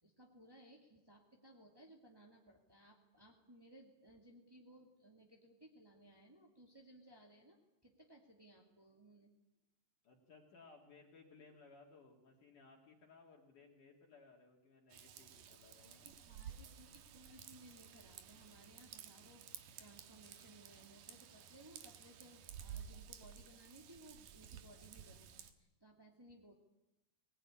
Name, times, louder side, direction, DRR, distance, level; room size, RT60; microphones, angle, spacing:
voice 1, 0.0-9.3 16.0-26.5, right 1 dB, 15° right, 0 dB, 0.9 m, -62 dB
voice 2, 10.0-16.1, left 4 dB, 55° left, 0 dB, 3.4 m, -62 dB
Raindrop / Vehicle horn car horn honking / Trickle dribble, 14.9-25.5, right 8 dB, 65° right, 2.6 m, -54 dB
23.0 x 19.5 x 9.9 m, 0.94 s
omnidirectional pair, 4.9 m